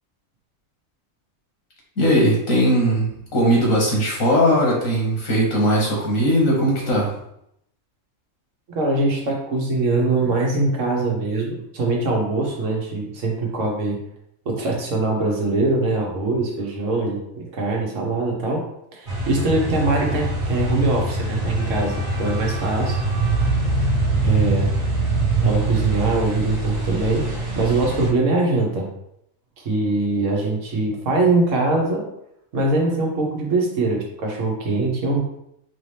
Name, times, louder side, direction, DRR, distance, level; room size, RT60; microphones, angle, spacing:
voice 1, 2.0-7.1, equal, 85° left, -3 dB, 1.7 m, -19 dB
voice 2, 8.7-14.0 14.5-18.6 18.9-23.0 24.2-24.7 25.4-28.9 29.6-32.0 32.5-35.2, right 2 dB, 70° right, -1 dB, 1.3 m, -22 dB
sound 1, 19.1-28.1, right 2 dB, 40° right, 1.0 m, -24 dB
4.2 x 2.8 x 3.2 m, 0.77 s
omnidirectional pair, 1.4 m